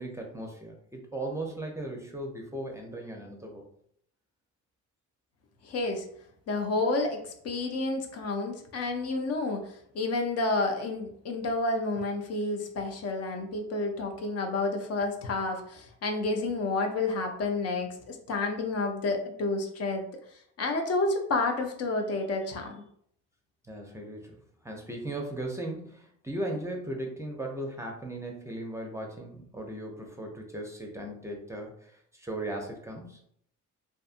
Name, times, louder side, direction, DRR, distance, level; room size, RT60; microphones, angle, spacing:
voice 1, 0.0-3.6 23.7-24.3 24.6-33.2, right 1 dB, 10° right, 1 dB, 0.5 m, -37 dB
voice 2, 5.6-6.0 6.5-20.0 20.6-22.8, left 2 dB, 55° left, 4 dB, 0.6 m, -30 dB
2.6 x 2.5 x 2.4 m, 0.67 s
cardioid pair, 90°, 30 cm